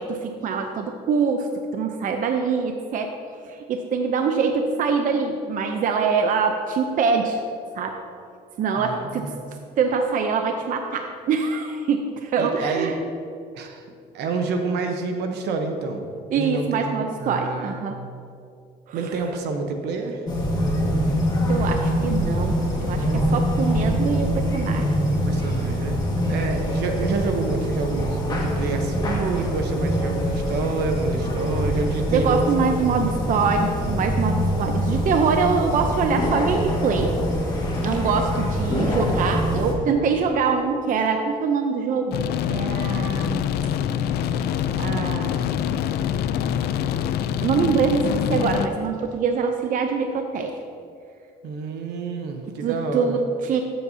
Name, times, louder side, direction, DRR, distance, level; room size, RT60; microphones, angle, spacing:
voice 1, 0.0-1.5 1.7-3.1 3.4-7.4 7.7-8.0 8.6-9.3 9.8-13.0 16.3-17.9 18.9-19.0 21.5-24.9 26.2-26.4 32.1-37.2 37.8-42.1 42.5-43.4 44.8-45.4 47.4-50.5 52.6-53.7, right 5 dB, 50° right, 5 dB, 0.6 m, -24 dB
voice 2, 8.7-9.4 12.4-13.0 13.5-13.9 14.1-16.0 16.3-17.9 18.9-20.2 25.0-26.0 26.3-32.4 51.4-53.2, right 4 dB, 80° right, 5 dB, 1.0 m, -28 dB
sound 1, 20.3-39.7, equal, 25° left, 1.8 m, -24 dB
sound 2, 42.1-48.7, left 9 dB, 75° left, 0.4 m, -25 dB
13.5 x 7.6 x 2.8 m, 2.4 s
cardioid pair, 110°, 17 cm